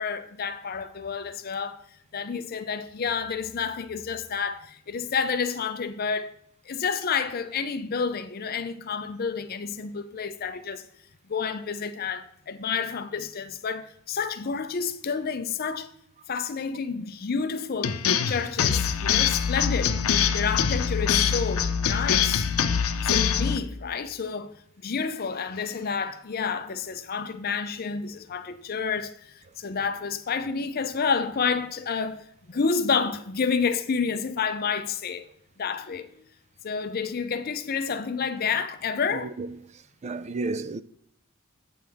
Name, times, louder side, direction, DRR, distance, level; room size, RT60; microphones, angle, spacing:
voice 1, 0.0-1.8 2.1-6.3 6.7-10.8 11.3-15.9 16.3-20.0 20.3-22.5 23.0-24.5 24.8-35.3 35.6-36.1 36.6-39.3, left 5 dB, 45° left, 0.5 m, -29 dB
sound 1, 17.8-23.6, left 7 dB, 90° left, 0.6 m, -24 dB
voice 2, 39.1-39.6 40.0-40.8, right 3 dB, 30° right, 0.3 m, -32 dB
8.5 x 7.9 x 3.5 m
head